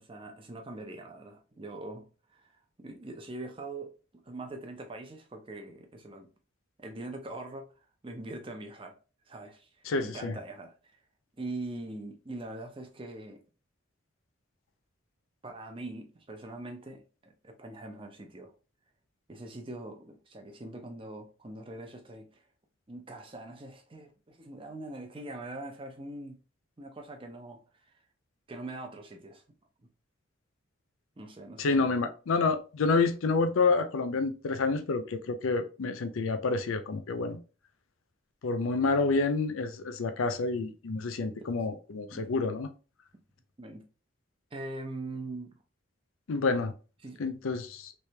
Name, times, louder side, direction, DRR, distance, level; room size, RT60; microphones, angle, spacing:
voice 1, 0.0-2.1 2.3-3.9 4.2-6.3 6.8-7.7 8.0-9.0 9.3-11.0 11.4-13.4 15.4-18.5 19.3-22.4 22.9-26.4 26.8-28.0 28.5-29.4 31.2-31.9 41.4-41.6 42.1-42.3 43.6-43.9 44.5-45.6 47.0-47.4, right 2 dB, 25° right, 0.6 m, -42 dB
voice 2, 9.9-10.3 31.6-37.4 38.4-42.7 46.3-46.7 47.2-47.9, left 4 dB, 85° left, 0.5 m, -28 dB
3.3 x 3.2 x 2.8 m
head